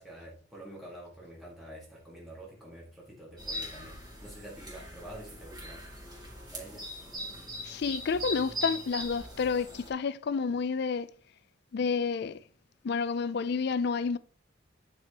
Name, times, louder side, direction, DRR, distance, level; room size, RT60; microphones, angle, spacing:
voice 1, 0.0-5.8 6.5-6.9, right 1 dB, ahead, 1.7 m, -47 dB
sound 1, 3.4-9.9, left 1 dB, 20° right, 2.0 m, -40 dB
voice 2, 7.6-11.1 11.7-12.4 12.8-14.2, left 5 dB, 55° left, 0.4 m, -30 dB
8.7 x 4.8 x 2.9 m
head